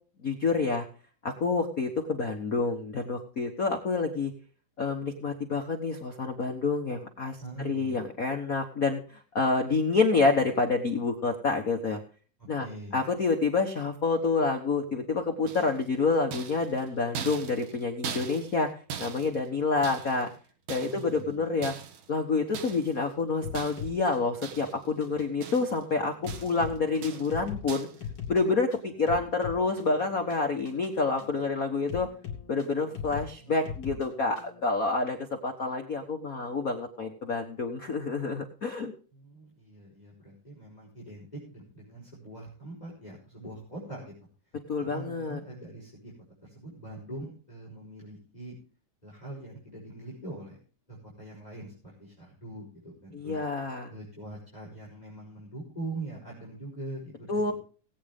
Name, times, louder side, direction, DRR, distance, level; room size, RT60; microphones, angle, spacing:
voice 1, 0.2-0.8 1.2-4.3 4.8-9.0 9.3-12.0 12.5-12.7 12.9-18.7 19.0-20.3 20.7-21.7 22.1-27.9 28.3-32.1 32.5-38.9 44.7-45.4 53.1-53.9 57.3-57.5, left 4 dB, 90° left, 4 dB, 0.7 m, -28 dB
voice 2, 7.4-8.1 12.4-12.9 20.7-21.4 33.4-33.5 39.1-44.1 44.9-46.1 46.4-48.5 49.0-50.6 50.9-51.7 52.0-53.4 53.9-57.5, right 2 dB, 10° left, -4 dB, 5.2 m, -42 dB
sound 1, 15.5-15.9 16.3-18.6 18.9-20.3 20.7-21.2 21.6-22.1 22.5-23.0 23.6-24.0 24.4-24.9 25.2-25.9 26.3-26.7 27.0-27.4 27.7-28.0, right 7 dB, 90° right, 3.0 m, -41 dB
sound 2, 23.4-34.6, left 7 dB, 45° left, 3.4 m, -42 dB
19.0 x 8.9 x 3.6 m, 0.40 s
omnidirectional pair, 3.7 m